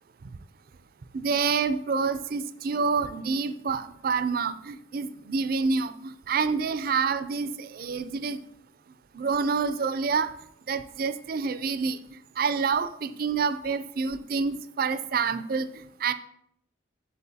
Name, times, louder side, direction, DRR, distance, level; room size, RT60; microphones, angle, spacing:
voice 1, 1.1-8.4 9.1-10.3 10.7-12.0 12.4-16.1, right 5 dB, 50° right, 12 dB, 0.4 m, -27 dB
8.1 x 7.3 x 2.8 m, 0.75 s
head